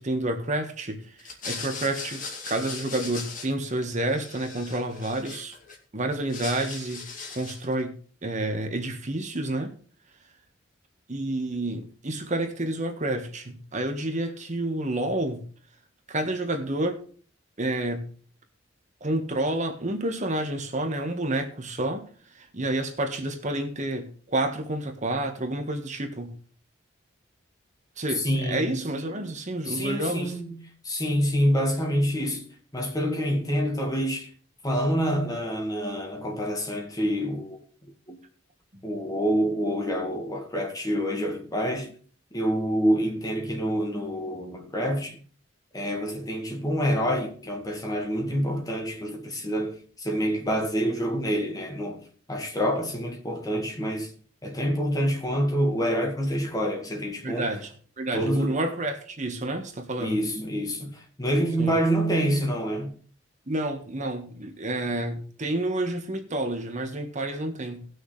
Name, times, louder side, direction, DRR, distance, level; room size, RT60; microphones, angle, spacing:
voice 1, 0.0-5.6 5.9-7.1 7.3-9.7 11.1-15.5 16.1-17.0 17.6-18.1 19.0-26.4 28.0-30.4 57.2-57.7 58.0-60.2 61.6-61.8 63.5-67.9, right 1 dB, 40° right, 1.5 m, -29 dB
sound 1, 1.2-3.8 4.1-5.8 6.1-7.7, left 4 dB, 45° left, 2.2 m, -38 dB
voice 2, 28.2-28.8 29.7-30.6 30.8-32.5 32.7-34.3 34.6-37.6 38.1-38.2 38.8-41.9 42.3-45.2 45.7-52.0 52.3-54.1 54.4-57.5 58.1-58.6 60.0-63.0, equal, 20° left, 1.8 m, -27 dB
19.0 x 6.4 x 3.2 m
head